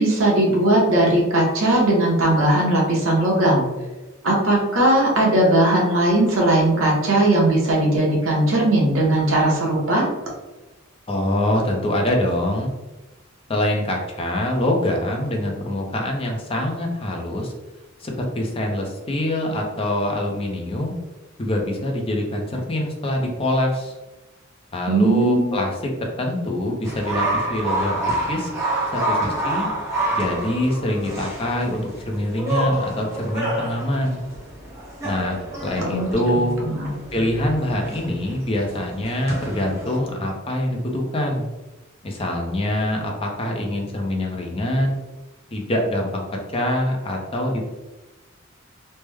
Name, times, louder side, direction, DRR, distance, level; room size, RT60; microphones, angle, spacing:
voice 1, 0.0-3.6 4.2-10.1 24.9-25.6 35.8-36.1 36.7-36.9, right 1 dB, 70° right, -3 dB, 1.0 m, -18 dB
voice 2, 11.1-12.7 13.5-17.5 18.0-20.9 21.4-23.9 24.7-28.5 28.9-29.7 30.1-34.3 35.0-36.6 37.1-41.4 42.0-45.0 45.5-47.6, left 1 dB, 25° left, 1 dB, 0.6 m, -24 dB
sound 1, 26.8-40.0, right 1 dB, 15° right, 0.9 m, -28 dB
3.2 x 2.1 x 3.3 m, 1.1 s
head